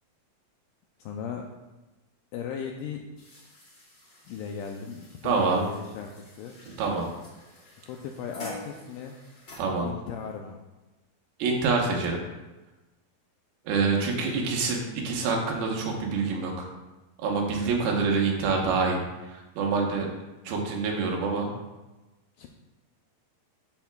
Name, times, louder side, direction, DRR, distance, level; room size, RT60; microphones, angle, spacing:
voice 1, 1.0-1.5 2.3-3.0 4.3-6.6 7.7-9.2 9.8-10.6 13.9-14.1 22.4-22.5, left 7 dB, 90° left, 2 dB, 1.9 m, -37 dB
sound 1, 3.2-9.6, left 1 dB, 35° left, 2.9 m, -47 dB
voice 2, 5.2-5.6 6.8-7.1 9.6-9.9 11.4-12.2 13.7-16.7 17.2-20.1 20.4-21.5, right 4 dB, 80° right, 0 dB, 3.1 m, -26 dB
13.0 x 5.7 x 2.3 m, 1.1 s
omnidirectional pair, 4.4 m